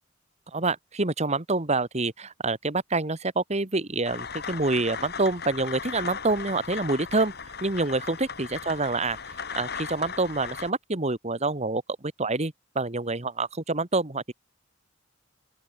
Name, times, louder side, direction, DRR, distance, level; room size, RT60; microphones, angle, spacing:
voice 1, 0.5-7.3 7.6-9.2 9.5-11.8 12.2-14.3, right 3 dB, 35° right, 1.8 m, -27 dB
sound 1, 4.0-10.7, left 6 dB, 55° left, 6.9 m, -37 dB
open air
head